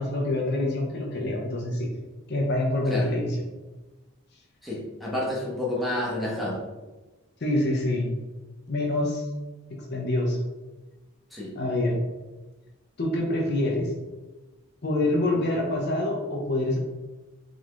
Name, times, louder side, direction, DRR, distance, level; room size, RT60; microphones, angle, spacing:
voice 1, 0.0-1.9 2.3-3.4 7.4-8.1 8.7-9.2 9.9-10.4 11.5-12.0 13.0-13.9 14.8-16.8, left 1 dB, 50° left, -1 dB, 0.7 m, -26 dB
voice 2, 4.6-6.6 11.3-11.5, left 1 dB, ahead, -6 dB, 0.9 m, -29 dB
3.9 x 3.5 x 3.1 m, 1.2 s
head